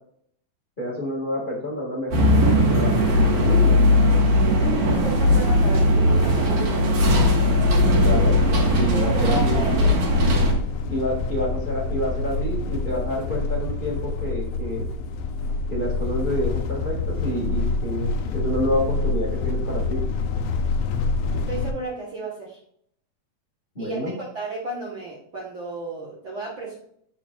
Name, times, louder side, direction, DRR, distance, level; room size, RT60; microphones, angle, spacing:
voice 1, 0.8-2.9 3.2-3.7 8.0-8.4 8.7-9.6 10.9-14.8 15.7-20.0 23.7-24.1, equal, 20° left, -4 dB, 1.6 m, -28 dB
sound 1, 2.1-10.5, left 1 dB, 90° right, 3.3 m, -18 dB
voice 2, 4.6-6.9 8.9-10.0 21.5-22.6 23.8-26.8, right 1 dB, 50° right, -4 dB, 1.7 m, -33 dB
sound 2, 7.9-21.7, left 3 dB, 80° left, 1.5 m, -27 dB
7.0 x 6.8 x 2.3 m, 0.67 s
omnidirectional pair, 3.7 m